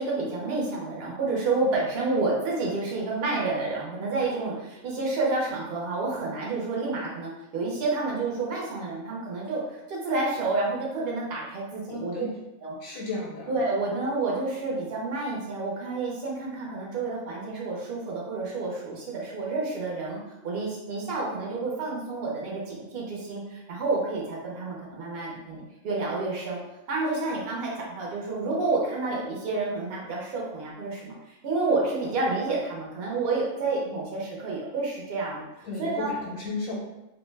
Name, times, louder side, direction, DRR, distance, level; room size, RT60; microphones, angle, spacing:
voice 1, 0.0-9.6 9.9-12.3 12.6-13.0 13.5-26.6 26.9-35.4 35.8-36.1, right 3 dB, 50° right, -4 dB, 0.9 m, -29 dB
voice 2, 11.9-12.3 12.8-13.5 35.6-36.7, left 3 dB, 90° left, -4 dB, 1.1 m, -34 dB
2.6 x 2.1 x 3.2 m, 0.97 s
omnidirectional pair, 1.4 m